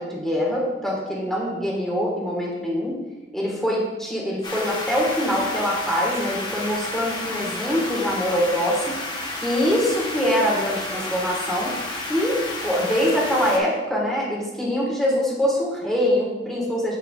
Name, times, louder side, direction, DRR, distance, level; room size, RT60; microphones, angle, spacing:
voice 1, 0.0-3.0 3.3-9.0 9.4-11.7 12.1-12.4 12.6-17.0, equal, ahead, -4 dB, 1.7 m, -24 dB
sound 1, 4.4-13.6, left 2 dB, 25° left, 1.0 m, -31 dB
13.5 x 4.7 x 2.4 m, 1.2 s
head